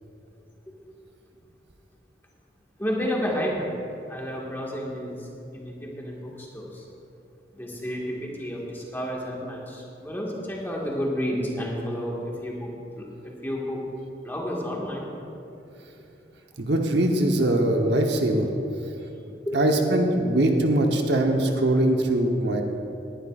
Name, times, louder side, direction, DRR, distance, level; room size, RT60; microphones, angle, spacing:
voice 1, 2.8-3.7 4.1-6.8 7.5-12.7 13.0-13.8 14.2-15.1 19.0-19.1 19.4-19.6, equal, 10° left, -3 dB, 1.7 m, -31 dB
voice 2, 16.6-18.5 19.5-22.6, right 1 dB, 65° right, 2 dB, 1.0 m, -22 dB
19.5 x 11.0 x 2.5 m, 2.8 s
head